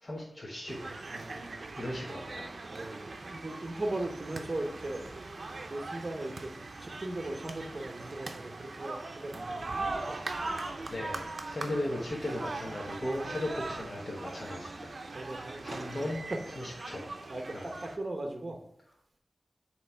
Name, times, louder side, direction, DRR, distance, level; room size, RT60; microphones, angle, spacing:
voice 1, 0.0-0.9 1.8-2.5 10.8-14.9 15.6-16.2 16.5-17.1 17.5-17.6, left 1 dB, 40° left, -4 dB, 1.2 m, -37 dB
sound 1, 0.7-18.0, right 3 dB, 65° right, 0.6 m, -40 dB
voice 2, 1.1-1.6 2.7-5.0 5.7-6.5 6.8-10.3 11.5-11.8 15.0-16.4 17.3-18.6, right 1 dB, 40° right, 3 dB, 0.9 m, -38 dB
7.8 x 3.1 x 4.4 m, 0.71 s
wide cardioid pair, 70°, 0 cm